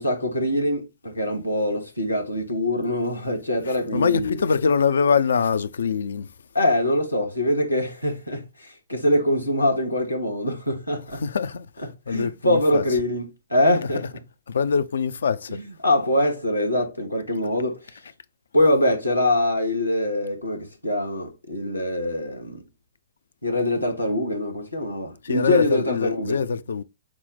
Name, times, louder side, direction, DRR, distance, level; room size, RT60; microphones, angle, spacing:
voice 1, 0.0-4.4 6.5-11.2 12.1-14.0 15.5-18.0 18.5-22.6 23.4-26.4, left 1 dB, 85° left, 1.1 m, -24 dB
voice 2, 3.9-6.3 11.2-11.7 12.1-12.8 14.5-15.6 25.2-26.8, left 6 dB, 65° left, 0.4 m, -23 dB
5.9 x 2.1 x 4.1 m
figure-of-eight pair, 110°, 0 cm